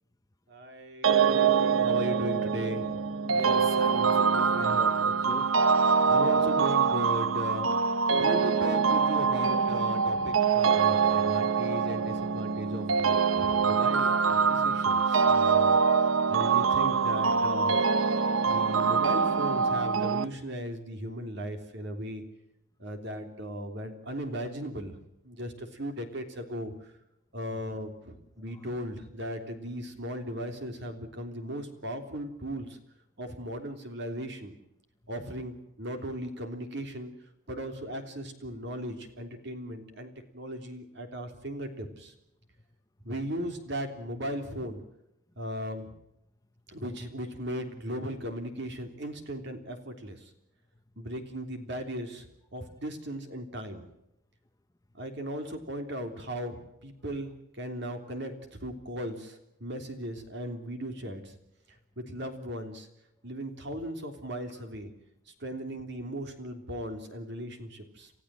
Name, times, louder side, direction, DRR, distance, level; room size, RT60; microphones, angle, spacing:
voice 1, 0.5-2.8 6.0-15.8 16.3-17.7 18.4-22.2 22.8-26.7 27.3-32.8 33.2-34.5 35.1-37.1 37.5-42.1 43.0-44.8 45.4-45.9 46.7-50.2 51.0-52.3 52.5-53.9 55.0-58.3 58.6-61.4 62.0-62.9 63.2-64.9 65.4-68.1, equal, 55° right, 6 dB, 3.4 m, -37 dB
sound 1, 1.0-20.3, right 5 dB, 80° right, 0.9 m, -24 dB
voice 2, 3.2-5.5, left 2 dB, 15° left, 10 dB, 0.8 m, -41 dB
28.5 x 15.0 x 7.7 m, 0.85 s
head